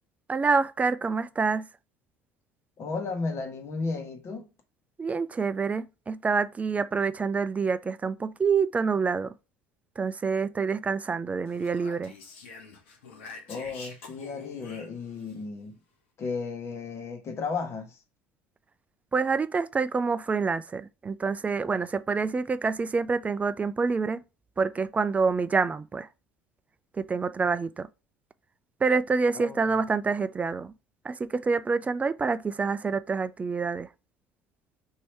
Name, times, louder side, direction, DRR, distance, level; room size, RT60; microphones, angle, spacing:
voice 1, 0.3-1.7 5.0-9.3 10.0-12.1 19.1-24.2 24.6-26.1 27.0-27.9 28.8-30.7 31.0-33.9, right 4 dB, 20° right, 0.3 m, -27 dB
voice 2, 2.8-4.5 13.5-15.8 16.2-18.0 29.3-29.6, left 4 dB, 45° left, 1.1 m, -34 dB
Speech, 11.5-15.4, left 4 dB, 75° left, 1.0 m, -46 dB
3.1 x 2.7 x 4.4 m
hypercardioid pair, 65°, 6 cm